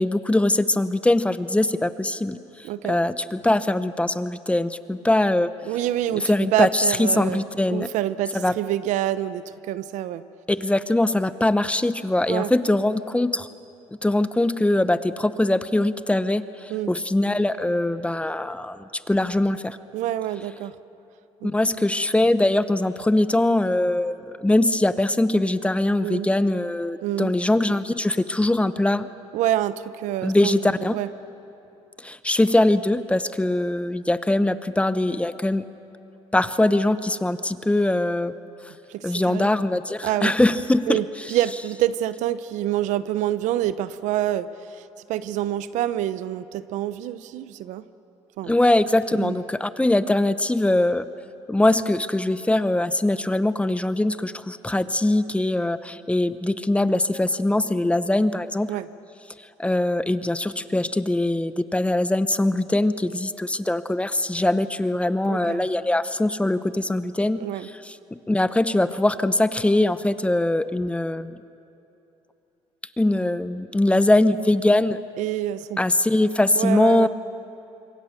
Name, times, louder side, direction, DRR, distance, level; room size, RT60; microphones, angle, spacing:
voice 1, 0.0-2.4 2.9-5.5 6.1-7.9 8.3-8.5 10.5-13.5 14.0-19.8 21.4-29.1 30.2-30.9 32.0-35.6 36.3-38.3 39.0-41.0 48.5-51.1 51.5-58.7 59.6-67.5 67.8-68.0 68.3-71.4 73.0-75.0 75.8-77.1, left 1 dB, 10° left, 13 dB, 0.8 m, -22 dB
voice 2, 2.6-3.0 5.6-7.4 7.7-10.3 12.3-12.5 16.7-17.0 19.9-20.8 21.4-21.7 26.0-26.3 27.0-27.3 29.3-30.6 30.9-31.1 38.9-39.5 40.0-40.3 40.9-44.8 45.1-47.8 48.4-48.5 49.2-49.4 58.7-58.9 65.2-65.7 67.4-67.7 75.2-75.8 76.6-77.1, right 13 dB, 80° right, 14 dB, 0.8 m, -27 dB
26.5 x 23.5 x 6.6 m, 2.8 s
supercardioid pair, 85°, 13 cm